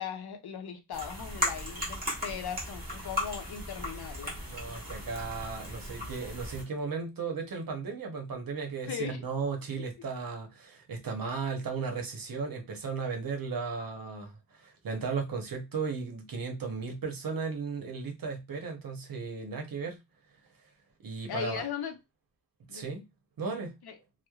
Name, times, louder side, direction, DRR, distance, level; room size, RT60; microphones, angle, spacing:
voice 1, 0.0-4.4 8.9-9.2 21.3-22.0 22.7-22.9 23.8-24.0, left 8 dB, 90° left, 0.6 m, -38 dB
sound 1, 0.9-6.6, left 1 dB, 25° right, 1.2 m, -36 dB
voice 2, 4.5-20.0 21.0-21.6 22.7-23.0 23.4-23.7, right 5 dB, 65° right, 0.8 m, -35 dB
3.0 x 2.1 x 2.3 m
wide cardioid pair, 165°, 37 cm